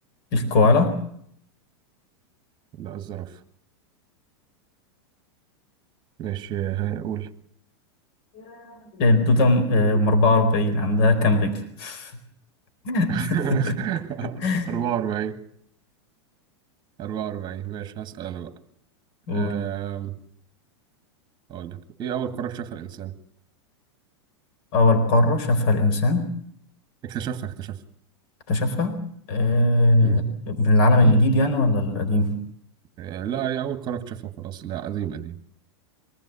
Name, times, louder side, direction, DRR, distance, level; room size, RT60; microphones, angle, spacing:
voice 1, 0.3-0.9 8.3-12.1 12.8-13.1 13.5-13.6 14.4-14.7 19.3-19.5 24.7-26.2 28.5-29.0 29.3-32.3, left 2 dB, 55° left, 8 dB, 4.3 m, -20 dB
voice 2, 2.7-3.4 6.2-7.3 13.1-15.4 17.0-18.5 19.3-20.2 21.5-23.1 27.0-27.8 30.0-30.2 31.0-31.1 33.0-35.4, right 10 dB, 30° right, 10 dB, 2.0 m, -30 dB
24.0 x 15.5 x 8.5 m, 0.68 s
supercardioid pair, 130°, 15 cm